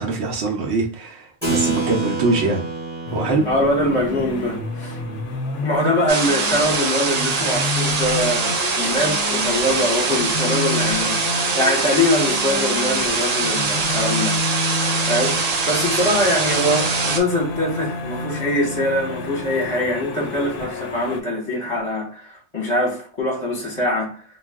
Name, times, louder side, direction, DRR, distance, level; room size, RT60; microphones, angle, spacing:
voice 1, 0.0-2.6 3.1-3.5, right 3 dB, 75° right, 0.8 m, -22 dB
Keyboard (musical), 1.4-7.4, right 3 dB, 10° right, 0.7 m, -30 dB
sound 1, 3.1-21.2, left 3 dB, 60° left, 0.7 m, -30 dB
voice 2, 3.4-5.0 5.6-14.4 14.6-24.2, left 1 dB, 30° left, 0.9 m, -23 dB
sound 2, 6.1-17.2, right 4 dB, 50° right, 0.5 m, -23 dB
2.3 x 2.2 x 3.4 m
omnidirectional pair, 1.2 m